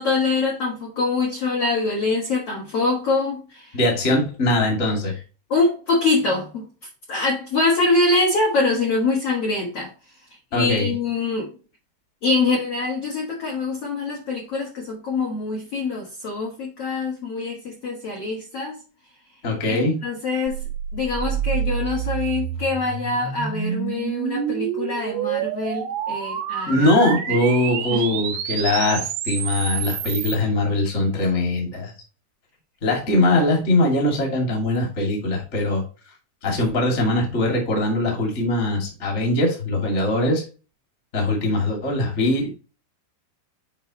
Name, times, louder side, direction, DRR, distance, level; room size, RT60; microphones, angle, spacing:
voice 1, 0.0-3.7 5.5-6.6 7.1-9.9 10.5-11.5 12.2-18.8 19.7-20.6 20.9-26.9 27.9-28.0, left 3 dB, 70° left, -2 dB, 1.4 m, -24 dB
voice 2, 3.7-5.2 10.5-10.9 19.4-20.0 26.7-31.9 32.8-35.8 36.4-40.4 41.1-42.5, left 1 dB, 35° left, 0 dB, 1.2 m, -21 dB
sound 1, 20.5-30.4, right 9 dB, 80° right, 2.3 m, -28 dB
8.0 x 4.6 x 3.0 m, 0.33 s
omnidirectional pair, 5.3 m